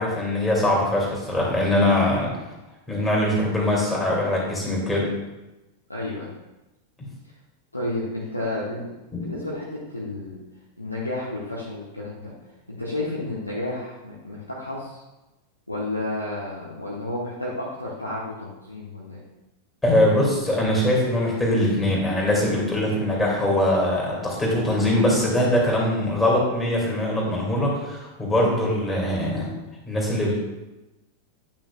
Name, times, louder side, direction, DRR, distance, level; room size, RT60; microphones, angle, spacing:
voice 1, 0.0-2.3 2.9-5.2 9.1-9.4 19.8-29.5 29.9-30.3, left 1 dB, 10° left, -4 dB, 2.7 m, -22 dB
voice 2, 5.9-6.3 7.7-8.9 9.2-10.4 10.8-12.3 12.7-15.0 15.7-19.2, left 2 dB, 85° left, -5 dB, 1.1 m, -31 dB
10.5 x 5.8 x 2.5 m, 1.0 s
figure-of-eight pair, 90°, 0 cm